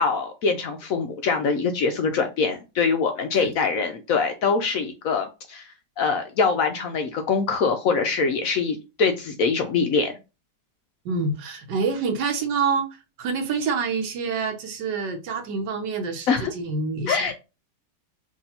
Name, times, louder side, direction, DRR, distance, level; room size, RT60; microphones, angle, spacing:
voice 1, 0.0-5.7 6.0-10.1 16.3-16.5 17.1-17.3, left 5 dB, 70° left, 0.8 m, -23 dB
voice 2, 11.0-12.9 13.2-17.3, right 4 dB, 85° right, 1.5 m, -27 dB
5.9 x 2.7 x 2.8 m
omnidirectional pair, 1.9 m